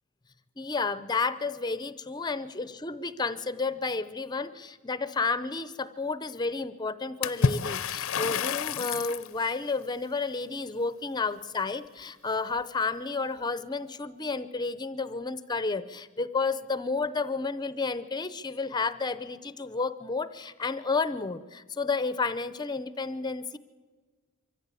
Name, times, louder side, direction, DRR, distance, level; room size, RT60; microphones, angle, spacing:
voice 1, 0.6-23.6, left 4 dB, 20° left, 14 dB, 0.5 m, -31 dB
Water / Splash splatter, 7.2-9.3, left 6 dB, 65° left, 0.6 m, -28 dB
24.0 x 15.0 x 8.3 m, 1.4 s
head